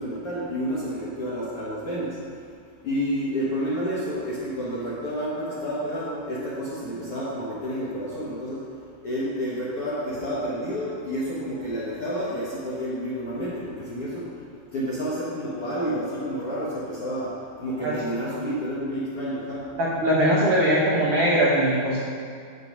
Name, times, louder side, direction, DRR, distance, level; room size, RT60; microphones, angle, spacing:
voice 1, 0.0-2.2 2.8-8.7 9.0-14.4 14.7-19.7, equal, 55° left, -8 dB, 1.6 m, -30 dB
voice 2, 17.8-18.2 19.8-22.0, right 1 dB, 75° right, -6 dB, 1.3 m, -21 dB
8.4 x 6.7 x 5.3 m, 2.2 s
omnidirectional pair, 4.5 m